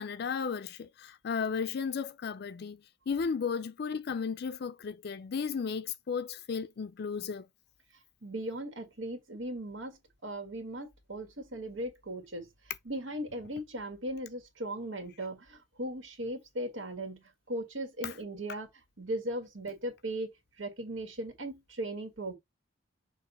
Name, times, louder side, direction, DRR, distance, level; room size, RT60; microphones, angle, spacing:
voice 1, 0.0-2.8 3.1-7.5 18.0-18.1, left 6 dB, 55° left, 0.4 m, -34 dB
voice 2, 8.2-12.5 12.8-18.7 19.0-22.4, right 1 dB, 90° right, 1.7 m, -38 dB
6.6 x 2.6 x 5.4 m
head